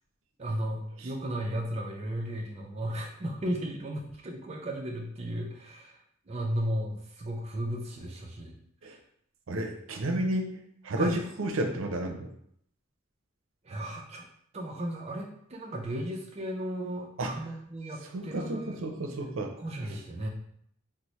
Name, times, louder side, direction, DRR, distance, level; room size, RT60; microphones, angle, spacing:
voice 1, 0.4-6.0 6.3-8.6 8.8-9.0 11.0-11.1 13.6-14.3 14.5-18.8 19.6-20.3, right 1 dB, 30° right, 1 dB, 0.4 m, -35 dB
voice 2, 9.5-10.5 10.8-12.3 17.2-17.3 18.1-19.5, right 1 dB, 80° right, 4 dB, 0.5 m, -31 dB
4.1 x 2.0 x 3.0 m, 0.69 s
head